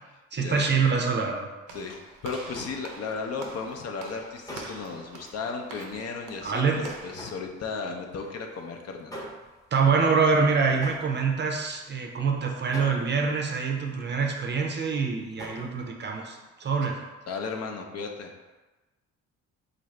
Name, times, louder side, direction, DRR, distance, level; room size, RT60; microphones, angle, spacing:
voice 1, 0.3-1.5 6.4-6.8 9.7-17.0, right 5 dB, 35° right, 2 dB, 0.5 m, -25 dB
voice 2, 1.7-9.1 17.3-18.3, left 4 dB, 55° left, 2 dB, 0.6 m, -35 dB
Walk footsteps / Slam, 1.7-7.2, right 3 dB, 85° right, 0.7 m, -45 dB
sound 1, 2.5-12.3 12.6-14.6 14.9-15.8, equal, 10° left, 0.8 m, -46 dB
3.8 x 2.5 x 3.2 m, 1.2 s
cardioid pair, 90°, 30 cm